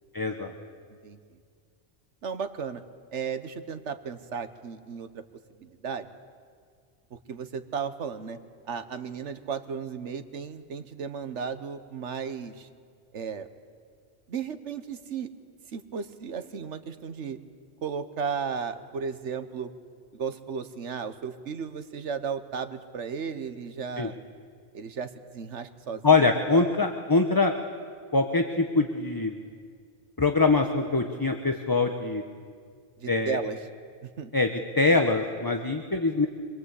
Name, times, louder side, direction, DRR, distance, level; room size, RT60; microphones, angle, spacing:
voice 1, 0.1-0.5 24.0-24.1 26.0-27.5 28.1-29.4 30.2-32.2 33.1-33.4 34.3-34.5 34.8-36.3, left 3 dB, 20° left, 5 dB, 1.0 m, -23 dB
voice 2, 2.2-2.8 3.1-5.2 5.6-6.1 7.1-8.4 8.7-12.7 13.1-13.5 14.3-15.3 15.7-17.4 17.8-19.7 20.1-24.2 24.7-26.7 33.0-33.6 34.0-34.3, right 6 dB, 80° right, 10 dB, 1.4 m, -35 dB
25.0 x 21.5 x 8.3 m, 2.1 s
omnidirectional pair, 1.2 m